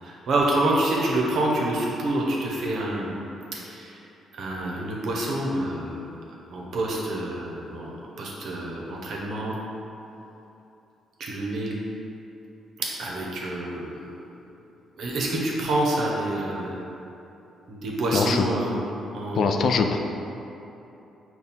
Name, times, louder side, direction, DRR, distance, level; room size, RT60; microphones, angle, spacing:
voice 1, 0.0-3.1 3.5-3.9 4.4-6.0 6.5-9.6 11.2-11.7 12.8-14.1 15.0-16.7 17.7-18.7 19.1-19.7, right 1 dB, 65° right, -3 dB, 0.8 m, -27 dB
voice 2, 18.1-18.5 19.3-20.0, left 5 dB, 60° left, 5 dB, 0.3 m, -22 dB
5.3 x 2.3 x 4.3 m, 2.9 s
cardioid pair, 90°, 0 cm